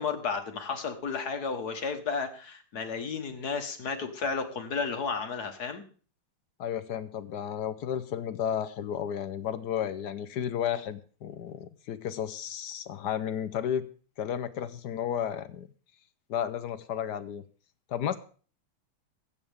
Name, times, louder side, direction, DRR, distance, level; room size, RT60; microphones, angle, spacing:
voice 1, 0.0-5.8, left 5 dB, 50° left, 6 dB, 1.8 m, -33 dB
voice 2, 6.6-13.8 14.2-15.7 16.3-17.4 17.9-18.2, left 9 dB, 65° left, 12 dB, 1.1 m, -33 dB
22.0 x 8.8 x 3.5 m, 0.41 s
omnidirectional pair, 2.4 m